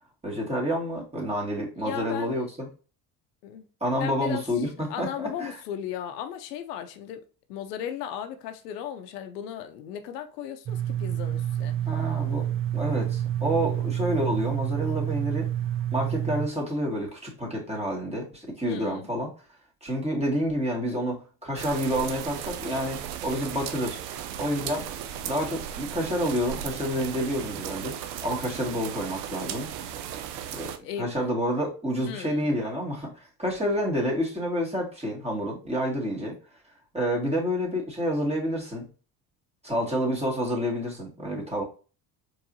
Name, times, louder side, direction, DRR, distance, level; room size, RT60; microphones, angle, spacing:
voice 1, 0.2-2.7 3.8-5.6 11.9-12.5 12.7-15.5 15.9-19.3 19.8-24.0 24.4-24.9 25.2-27.9 28.2-29.7 30.5-36.4 36.9-38.9 39.6-41.6, equal, 15° right, 2.1 m, -29 dB
voice 2, 1.8-2.5 3.4-4.4 4.9-7.2 7.5-11.7 18.7-19.1 30.8-31.3 32.0-32.5, left 9 dB, 90° left, 0.6 m, -36 dB
ambience warehouse, 10.7-16.5, right 11 dB, 30° right, 0.4 m, -28 dB
sound 1, 21.6-30.8, right 9 dB, 85° right, 0.6 m, -36 dB
4.6 x 3.2 x 2.7 m
hypercardioid pair, 65°, 47 cm